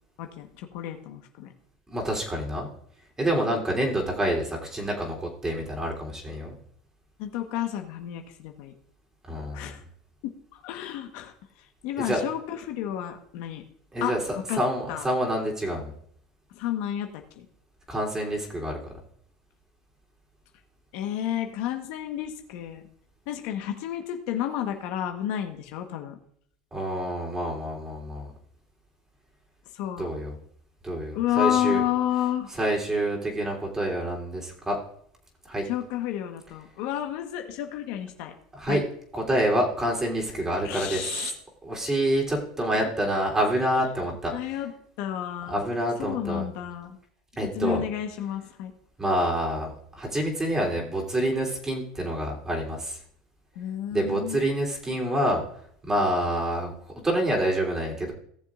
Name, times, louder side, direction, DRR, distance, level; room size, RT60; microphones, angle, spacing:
voice 1, 0.2-1.5 7.2-8.7 9.5-9.8 10.2-10.3 10.6-11.3 11.8-13.6 14.0-14.1 14.5-14.6 14.9-15.1 16.6-17.1 17.4-17.5 20.9-22.8 23.3-26.2 29.7-30.1 31.1-32.5 35.6-38.3 38.7-38.8 40.6-41.3 44.3-44.7 45.0-45.6 46.0-47.0 47.4-48.7 53.5-54.4, left 11 dB, 70° left, 4 dB, 1.3 m, -30 dB
voice 2, 1.9-2.7 3.2-5.2 5.4-6.5 9.3-9.7 12.0-12.2 13.9-14.2 14.6-15.9 17.9-18.7 26.7-28.3 30.0-30.3 30.8-31.8 32.5-34.8 35.5-35.6 38.5-38.8 39.1-41.3 41.6-44.3 45.4-46.5 47.4-47.8 49.0-53.0 53.9-55.4 55.9-56.7 57.0-58.1, right 1 dB, 15° right, -1 dB, 3.4 m, -27 dB
17.5 x 7.0 x 2.5 m, 0.65 s
supercardioid pair, 95°, 3 cm